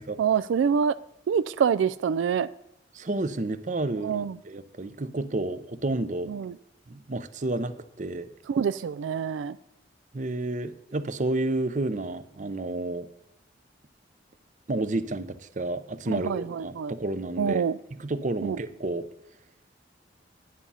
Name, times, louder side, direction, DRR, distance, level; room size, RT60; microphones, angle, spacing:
voice 1, 0.2-1.0 1.3-2.5 4.0-4.3 6.3-6.5 8.5-9.6 16.1-16.9 17.4-17.8 18.4-18.6, right 7 dB, 85° right, 15 dB, 0.3 m, -26 dB
voice 2, 2.9-6.3 6.9-8.3 10.1-13.1 14.7-19.1, right 2 dB, 40° right, 13 dB, 0.6 m, -30 dB
9.8 x 9.6 x 5.6 m, 0.83 s
head